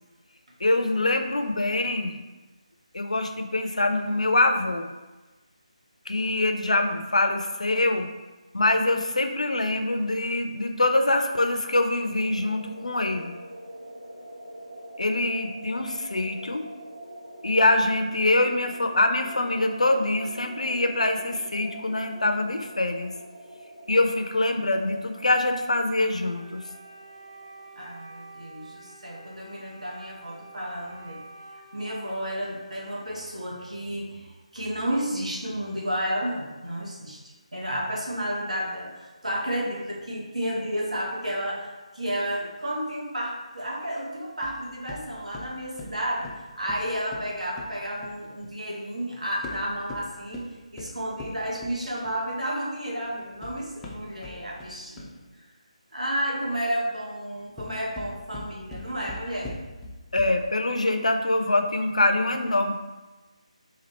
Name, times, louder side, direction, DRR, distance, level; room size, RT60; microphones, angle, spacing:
voice 1, 0.6-2.2 2.9-4.9 6.1-8.1 8.5-13.4 15.0-16.7 17.4-23.1 23.9-26.6 60.1-62.9, left 2 dB, 70° left, 6 dB, 0.4 m, -24 dB
sound 1, 11.0-27.9, right 1 dB, 50° right, 1.0 m, -45 dB
Wind instrument woodwind instrument, 26.1-33.8, right 2 dB, 25° right, 0.6 m, -48 dB
voice 2, 27.7-31.3 31.5-37.2 37.5-55.5 55.9-59.5, equal, 70° right, -4 dB, 1.4 m, -32 dB
sound 2, 44.4-48.6 49.3-52.3 53.1-55.3 57.4-60.6, left 2 dB, 5° left, 0.3 m, -42 dB
4.2 x 2.6 x 4.1 m, 1.2 s
figure-of-eight pair, 155°, 4 cm